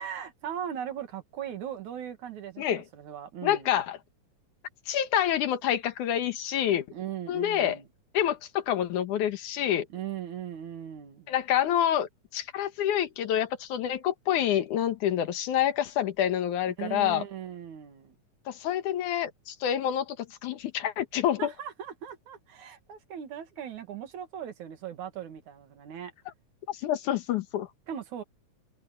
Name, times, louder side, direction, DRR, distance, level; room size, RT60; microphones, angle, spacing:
voice 1, 0.0-2.7 2.9-3.7 6.9-7.9 9.9-11.3 16.8-18.2 21.4-26.1 27.9-28.2, right 9 dB, 80° right, 3.3 m, -38 dB
voice 2, 3.4-4.0 4.9-6.9 7.3-7.8 8.1-9.9 11.3-17.2 18.5-21.5 26.7-27.7, left 10 dB, 85° left, 2.9 m, -27 dB
omnidirectional pair, 3.4 m